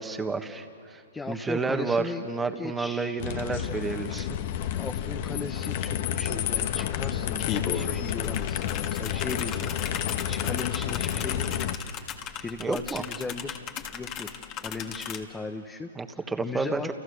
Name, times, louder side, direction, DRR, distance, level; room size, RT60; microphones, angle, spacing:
voice 1, 0.0-1.0 1.3-4.3 12.6-13.0 16.0-16.8, right 4 dB, 10° right, 7 dB, 1.6 m, -30 dB
voice 2, 1.1-2.2 2.6-3.2 4.7-11.5 11.8-16.9, left 3 dB, 10° left, 5 dB, 1.1 m, -38 dB
sound 1, 3.2-11.7, left 10 dB, 50° left, 1.3 m, -30 dB
sound 2, 6.3-6.4 6.7-15.2, left 8 dB, 30° left, 1.8 m, -37 dB
30.0 x 29.5 x 6.7 m, 2.6 s
hypercardioid pair, 135°, 0 cm